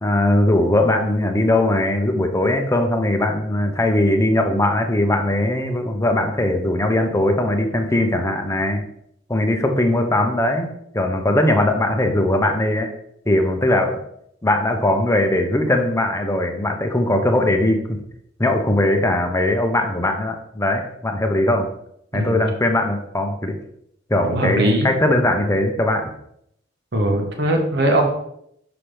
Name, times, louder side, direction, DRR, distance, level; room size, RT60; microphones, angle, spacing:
voice 1, 0.0-8.8 9.3-10.7 10.9-12.9 13.3-14.0 14.4-18.0 18.4-21.7 22.1-23.6 24.1-26.1, left 1 dB, 15° left, 5 dB, 0.7 m, -20 dB
voice 2, 22.1-22.4 24.2-24.9 26.9-28.1, right 1 dB, 60° right, 2 dB, 1.3 m, -20 dB
5.8 x 5.8 x 3.4 m, 0.73 s
head